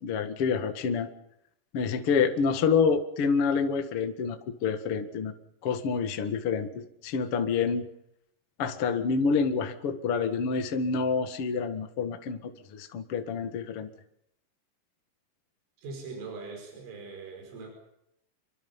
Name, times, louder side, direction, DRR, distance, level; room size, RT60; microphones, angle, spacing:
voice 1, 0.0-1.1 1.7-5.3 5.6-7.9 8.6-13.9, left 5 dB, 80° left, 6 dB, 1.2 m, -27 dB
voice 2, 15.8-17.7, right 4 dB, 70° right, 2 dB, 7.4 m, -41 dB
26.5 x 24.5 x 5.4 m, 0.78 s
omnidirectional pair, 5.8 m